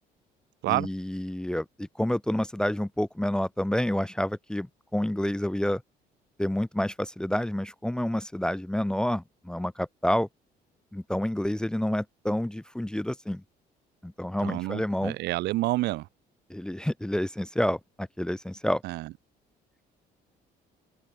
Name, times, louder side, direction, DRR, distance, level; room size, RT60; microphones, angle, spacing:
voice 1, 0.7-5.8 6.4-10.3 10.9-13.4 14.0-15.2 16.5-18.8, left 1 dB, 5° left, 0.9 m, -29 dB
voice 2, 14.4-16.1 18.8-19.1, right 18 dB, 85° right, 3.2 m, -28 dB
cardioid pair, 110°, 17 cm